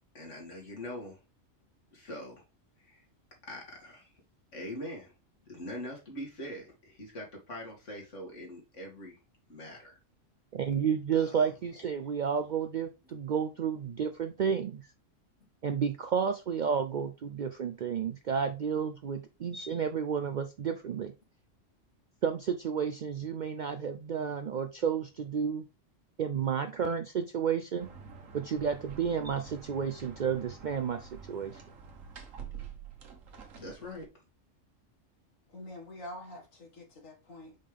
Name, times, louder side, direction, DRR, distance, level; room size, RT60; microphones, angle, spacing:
voice 1, 0.1-1.2 1.9-2.4 2.8-3.1 3.5-4.1 4.5-5.1 5.5-9.2 9.5-10.0 11.1-11.5 33.6-34.1, left 1 dB, 70° left, 2.5 m, -43 dB
voice 2, 10.5-14.8 15.6-21.1 22.2-25.6 26.2-27.9 28.3-31.6, right 7 dB, 65° right, 0.4 m, -31 dB
sound 1, 27.8-34.1, right 6 dB, 90° right, 1.5 m, -47 dB
voice 3, 35.5-37.6, left 1 dB, 85° left, 2.2 m, -46 dB
5.5 x 5.4 x 3.4 m
omnidirectional pair, 1.3 m